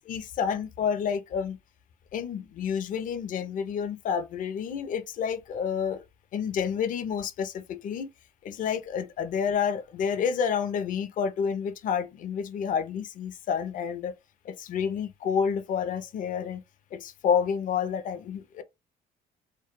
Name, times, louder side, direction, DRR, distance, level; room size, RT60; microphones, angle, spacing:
voice 1, 0.0-1.6 2.1-6.0 6.3-8.1 8.4-14.2 14.4-16.6 16.9-18.6, left 7 dB, 50° left, 0.5 m, -29 dB
2.2 x 2.0 x 3.0 m
cardioid pair, 110°, 17 cm